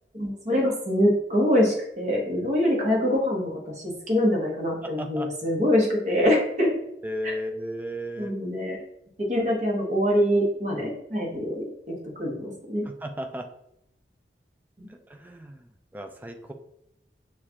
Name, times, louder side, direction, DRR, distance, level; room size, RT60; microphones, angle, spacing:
voice 1, 0.1-6.7 7.2-7.3 8.2-8.8 9.2-12.9 14.8-14.9, equal, 40° right, -1 dB, 1.1 m, -24 dB
voice 2, 4.8-5.3 7.0-8.3 12.9-13.5 14.9-15.7 15.9-16.5, equal, 10° right, 5 dB, 0.3 m, -35 dB
6.5 x 2.4 x 2.9 m, 0.80 s
head